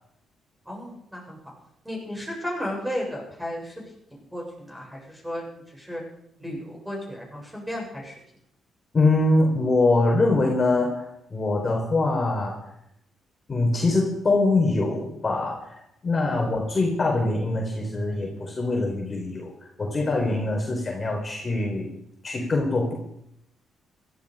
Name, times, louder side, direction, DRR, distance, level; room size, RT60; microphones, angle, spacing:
voice 1, 0.7-1.4 1.8-3.7 4.1-6.0 6.4-8.1 16.3-16.5, equal, 5° right, -1 dB, 7.2 m, -34 dB
voice 2, 8.9-11.0 11.3-12.5 13.5-19.5 19.8-21.9 22.2-22.9, left 2 dB, 30° left, -1 dB, 4.3 m, -23 dB
16.5 x 13.5 x 5.0 m, 0.77 s
cardioid pair, 90°, 0 cm